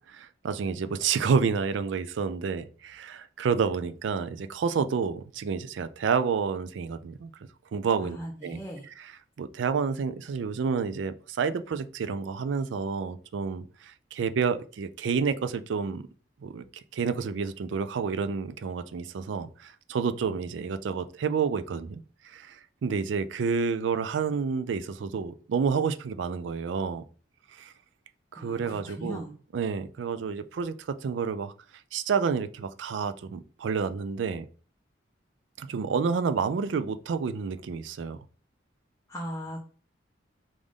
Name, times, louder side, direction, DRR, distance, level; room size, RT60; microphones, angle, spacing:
voice 1, 0.1-7.3 7.7-8.2 8.4-8.6 9.0-9.1 9.4-16.0 16.4-16.6 16.9-22.0 22.3-27.0 27.6-27.7 28.3-29.2 29.5-31.5 31.9-34.5 35.6-38.2, right 5 dB, 80° right, 0.4 m, -29 dB
voice 2, 8.0-8.9 28.4-29.3 39.1-39.6, equal, 15° left, 0.7 m, -38 dB
5.0 x 2.5 x 3.6 m
head